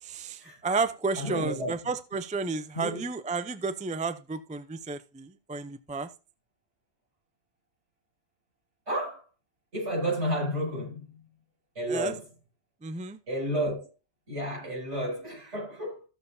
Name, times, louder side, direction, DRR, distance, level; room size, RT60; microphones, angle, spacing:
voice 1, 0.0-6.1 11.9-12.1 12.8-13.2, right 4 dB, 10° right, 0.3 m, -32 dB
voice 2, 1.2-1.7 2.7-3.0 8.9-9.2 9.7-11.2 11.8-12.2 13.3-13.9 14.3-16.1, equal, 75° right, 7.2 m, -31 dB
14.5 x 6.9 x 2.7 m
omnidirectional pair, 1.2 m